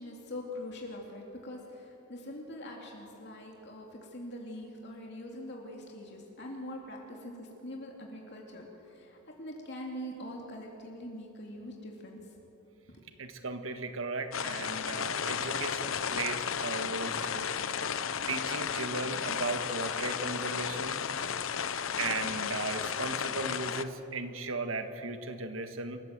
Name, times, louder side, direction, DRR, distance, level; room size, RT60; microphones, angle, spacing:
voice 1, 0.0-12.2 12.9-13.0, left 1 dB, 55° left, 0 dB, 2.7 m, -43 dB
voice 2, 13.2-17.5 18.3-21.0 22.0-26.0, right 3 dB, 80° right, 7 dB, 1.6 m, -36 dB
sound 1, 14.3-23.8, left 7 dB, 80° left, 0.8 m, -34 dB
27.5 x 15.0 x 7.6 m, 3.0 s
head